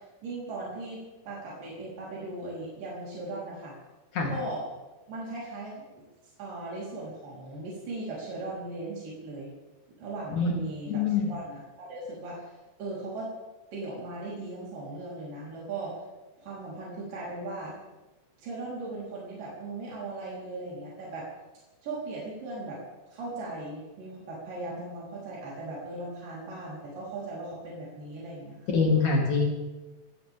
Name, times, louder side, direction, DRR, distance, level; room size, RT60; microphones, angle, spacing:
voice 1, 0.0-3.8 4.3-4.7 5.1-5.8 6.4-9.5 10.0-13.3 13.7-16.0 16.4-17.8 18.4-21.3 21.8-22.8 23.1-28.6, right 2 dB, 85° right, -6 dB, 5.7 m, -38 dB
voice 2, 10.9-11.3 28.7-29.5, left 4 dB, 60° left, -1 dB, 4.7 m, -24 dB
24.0 x 16.0 x 3.6 m, 1.1 s
omnidirectional pair, 3.8 m